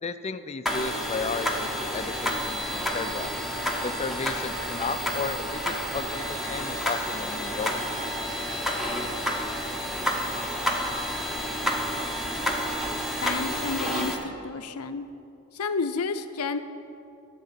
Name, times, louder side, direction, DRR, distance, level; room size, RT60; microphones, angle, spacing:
voice 1, 0.0-3.3 3.8-7.8, left 4 dB, 30° left, 11 dB, 0.4 m, -34 dB
sound 1, 0.7-14.2, equal, ahead, 0.9 m, -30 dB
voice 2, 13.2-15.0 15.5-16.6, left 4 dB, 90° left, 9 dB, 0.6 m, -30 dB
12.0 x 7.6 x 5.8 m, 2.7 s
head